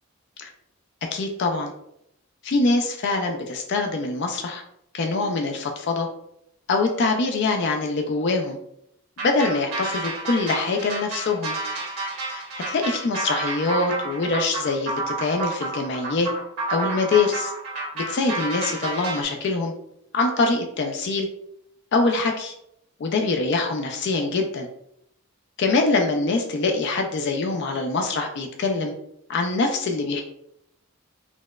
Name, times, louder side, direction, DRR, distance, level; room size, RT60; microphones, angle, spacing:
voice 1, 1.1-1.7 2.4-4.6 4.9-6.1 6.7-8.6 9.2-11.5 12.2-16.3 16.7-17.5 17.9-19.7 20.1-21.3 21.9-22.5 23.0-24.7 25.6-28.9 29.3-30.2, left 3 dB, 50° left, 3 dB, 0.3 m, -24 dB
sound 1, 9.2-19.2, right 3 dB, 90° right, 1.1 m, -30 dB
4.0 x 2.0 x 2.3 m, 0.76 s
head